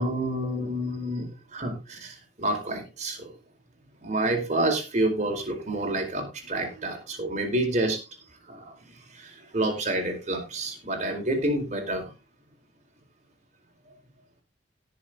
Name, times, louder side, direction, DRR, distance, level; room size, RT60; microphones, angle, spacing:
voice 1, 0.0-3.3 4.0-8.0 8.5-8.7 9.1-12.1, right 1 dB, 40° right, 3 dB, 4.5 m, -28 dB
17.5 x 7.0 x 3.8 m, 0.28 s
head